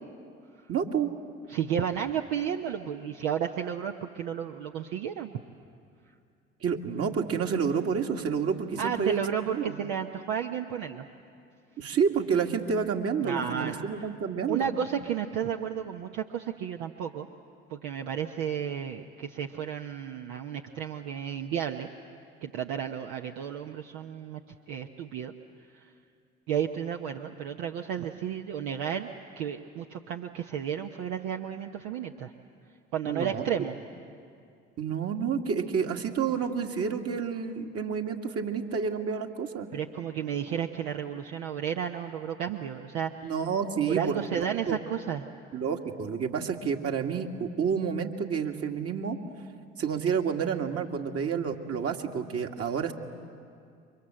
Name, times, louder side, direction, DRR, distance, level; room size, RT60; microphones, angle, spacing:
voice 1, 0.7-1.1 6.6-9.2 9.5-9.8 11.8-14.7 33.1-33.5 34.8-39.7 43.2-44.8 45.5-49.2 49.8-52.9, right 6 dB, 50° right, 3 dB, 2.2 m, -29 dB
voice 2, 1.5-5.3 8.8-11.0 13.2-14.0 14.5-17.3 17.7-21.9 22.4-24.4 24.7-25.3 25.8-25.9 26.5-29.1 29.4-32.3 32.9-33.7 39.7-43.1 43.9-45.3, right 8 dB, 75° right, 4 dB, 1.0 m, -32 dB
29.0 x 24.0 x 7.7 m, 2.4 s
hypercardioid pair, 55°, 31 cm